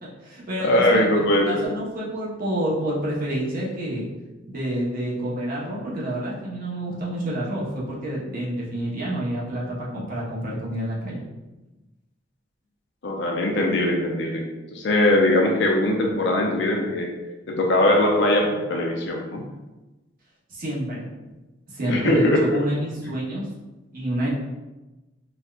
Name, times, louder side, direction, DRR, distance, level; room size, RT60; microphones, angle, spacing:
voice 1, 0.0-4.1 4.5-11.2 20.5-21.1 21.7-23.5 23.9-24.3, right 1 dB, 50° right, -6 dB, 0.9 m, -28 dB
voice 2, 0.6-1.6 13.0-17.1 17.5-19.4 21.9-22.6, left 1 dB, 65° left, 1 dB, 0.5 m, -21 dB
4.0 x 2.3 x 2.4 m, 1.1 s
head